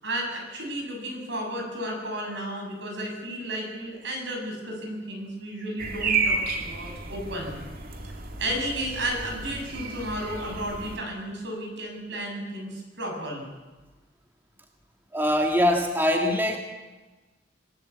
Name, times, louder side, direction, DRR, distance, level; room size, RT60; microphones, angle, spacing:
voice 1, 0.0-7.6 8.4-13.5, right 1 dB, 65° right, 2 dB, 7.3 m, -33 dB
sound 1, 5.8-11.0, right 4 dB, 50° right, 2.5 m, -31 dB
voice 2, 15.1-16.6, left 1 dB, 10° right, 3 dB, 1.8 m, -22 dB
26.0 x 16.0 x 8.5 m, 1.2 s
head